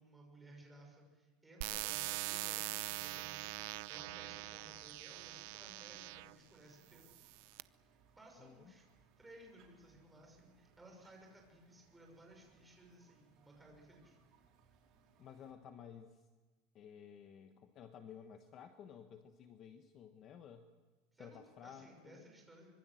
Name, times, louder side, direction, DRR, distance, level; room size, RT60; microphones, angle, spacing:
voice 1, 0.0-7.1 8.2-8.9 9.2-14.2 21.1-22.7, right 1 dB, 5° right, 0 dB, 6.0 m, -59 dB
sound 1, 1.6-6.3 7.0-7.6, right 19 dB, 55° right, 0.7 m, -43 dB
sound 2, 2.4-15.5, right 5 dB, 40° right, 4.5 m, -70 dB
voice 2, 8.4-8.7 15.2-16.2 16.7-20.7 21.2-22.2, left 8 dB, 30° left, 6 dB, 1.2 m, -54 dB
25.0 x 23.0 x 7.9 m, 1.3 s
cardioid pair, 180°, 0 cm